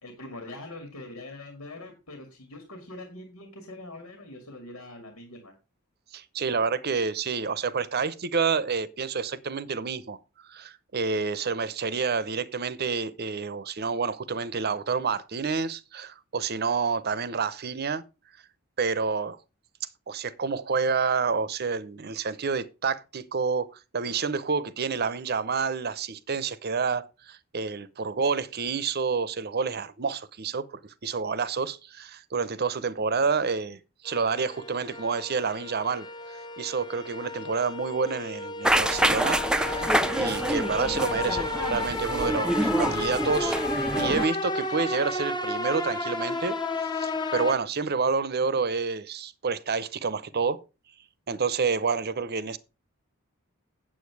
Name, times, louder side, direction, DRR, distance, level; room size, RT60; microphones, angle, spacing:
voice 1, 0.0-5.5, left 2 dB, 85° left, 2.1 m, -43 dB
voice 2, 6.1-18.0 18.8-19.4 20.1-23.7 23.9-36.1 36.6-43.6 44.0-50.6 51.3-52.6, right 5 dB, 50° right, 0.7 m, -29 dB
sound 1, 34.1-47.6, left 2 dB, 20° left, 0.9 m, -33 dB
sound 2, 38.6-44.3, right 1 dB, 5° right, 0.5 m, -26 dB
8.6 x 7.6 x 4.7 m
head